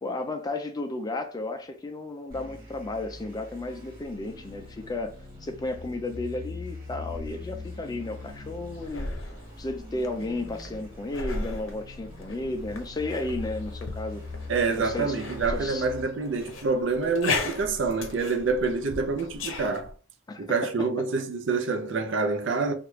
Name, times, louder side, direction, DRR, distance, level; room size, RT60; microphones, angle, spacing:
voice 1, 0.0-9.1 9.6-14.3 14.7-15.2 15.5-15.9 20.3-20.4 20.8-20.9, left 2 dB, 20° left, 0.3 m, -33 dB
sound 1, 2.3-16.0, left 3 dB, 45° right, 1.6 m, -42 dB
sound 2, 7.1-19.9, left 3 dB, 70° left, 0.7 m, -37 dB
voice 2, 14.5-19.9 20.4-22.7, right 4 dB, 60° right, 0.5 m, -27 dB
3.0 x 2.4 x 3.1 m
head